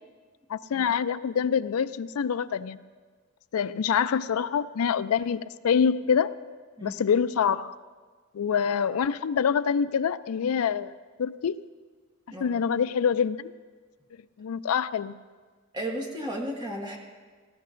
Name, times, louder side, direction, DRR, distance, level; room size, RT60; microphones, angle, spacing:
voice 1, 0.5-2.8 3.5-6.3 6.8-7.7 8.3-10.9 11.2-11.6 12.4-13.5 14.4-15.1, left 7 dB, 80° left, 14 dB, 0.4 m, -25 dB
voice 2, 15.7-17.0, right 1 dB, 20° right, 0 dB, 1.5 m, -34 dB
18.5 x 15.0 x 2.5 m, 1.5 s
head